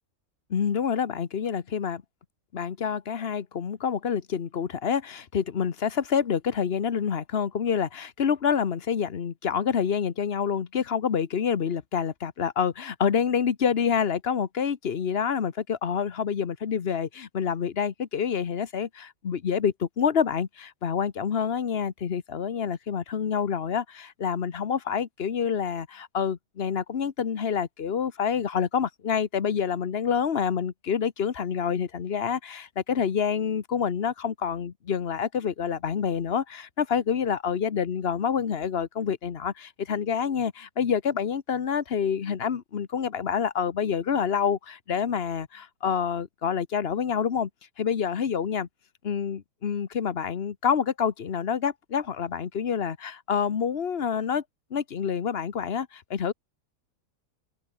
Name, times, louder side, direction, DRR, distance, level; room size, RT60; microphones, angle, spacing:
voice 1, 0.5-2.0 2.5-47.5 47.8-48.7 49.0-54.4 54.7-56.3, left 7 dB, 40° left, 1.1 m, -27 dB
open air
omnidirectional pair, 1.8 m